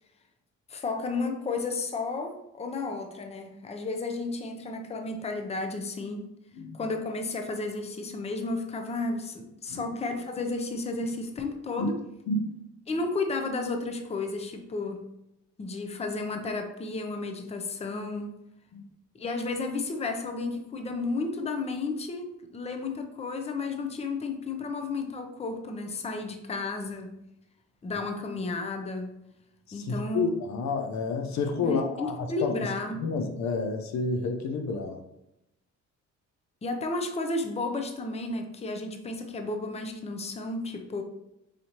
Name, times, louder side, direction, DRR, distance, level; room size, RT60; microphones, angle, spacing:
voice 1, 0.7-6.2 6.7-12.0 12.9-15.0 15.6-18.3 19.1-27.2 27.8-29.2 29.7-30.3 31.6-33.0 36.6-41.0, left 3 dB, 20° left, 5 dB, 0.6 m, -32 dB
voice 2, 12.3-12.6 18.7-18.8 29.7-32.7 32.9-35.0, left 3 dB, 65° left, 6 dB, 0.6 m, -30 dB
4.9 x 2.7 x 2.9 m, 0.86 s
cardioid pair, 90°, 30 cm